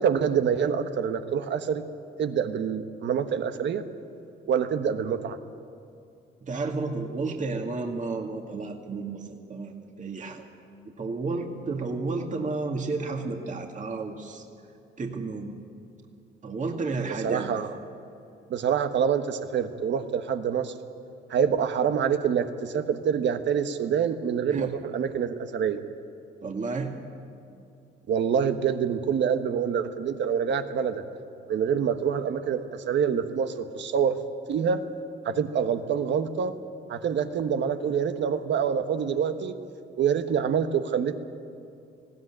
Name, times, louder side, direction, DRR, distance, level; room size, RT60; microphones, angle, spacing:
voice 1, 0.0-1.9 2.2-3.8 4.5-5.4 17.2-17.7 18.5-20.7 21.3-25.8 28.1-31.0 31.5-34.2 34.5-34.8 35.2-36.6 36.9-39.5 40.0-41.1, right 7 dB, 65° right, 8 dB, 1.3 m, -26 dB
voice 2, 6.4-10.4 11.0-14.4 15.0-15.5 16.4-17.5 24.5-24.7 26.4-26.9, right 3 dB, 40° right, 2 dB, 2.2 m, -32 dB
19.5 x 16.5 x 9.9 m, 2.5 s
cardioid pair, 90°, 20 cm